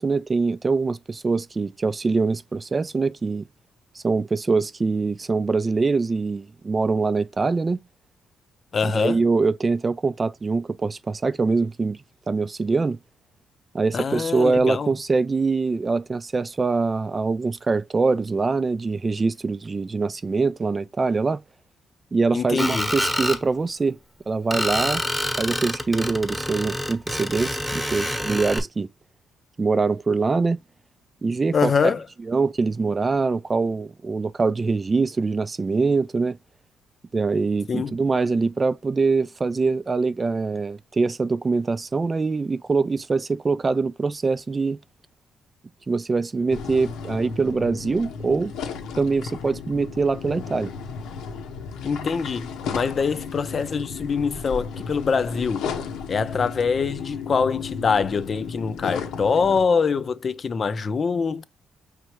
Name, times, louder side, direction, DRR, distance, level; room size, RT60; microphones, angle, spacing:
voice 1, 0.0-3.5 4.0-7.8 8.8-12.0 12.3-13.0 13.7-21.4 22.1-24.0 24.3-25.0 25.4-28.9 29.6-30.6 31.2-31.9 32.3-36.4 37.1-44.8 45.9-48.5 49.0-50.7, right 4 dB, 30° right, 0.3 m, -23 dB
voice 2, 8.7-9.2 13.9-14.9 22.3-22.9 31.5-32.1 37.7-38.0 51.8-55.7 56.1-61.4, left 5 dB, 45° left, 0.5 m, -24 dB
Screech, 22.6-23.4 24.5-28.6, equal, ahead, 1.0 m, -27 dB
sound 1, 46.5-59.6, left 6 dB, 90° left, 0.9 m, -34 dB
5.2 x 3.3 x 3.0 m
cardioid pair, 90°, 0 cm